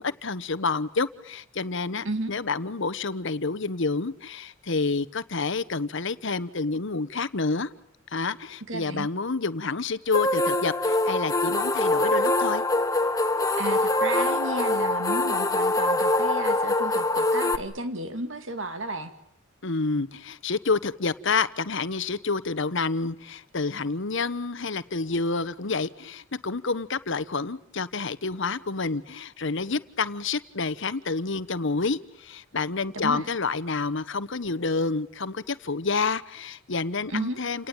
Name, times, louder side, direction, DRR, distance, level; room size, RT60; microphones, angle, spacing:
voice 1, 0.0-7.7 8.1-12.6 19.6-37.7, left 4 dB, 65° left, 14 dB, 1.2 m, -28 dB
voice 2, 8.7-9.1 13.6-19.1 32.9-33.3 37.1-37.4, right 2 dB, 70° right, 9 dB, 2.4 m, -32 dB
sound 1, 10.1-17.6, left 2 dB, 20° left, 1.2 m, -24 dB
29.5 x 19.0 x 9.0 m, 0.73 s
head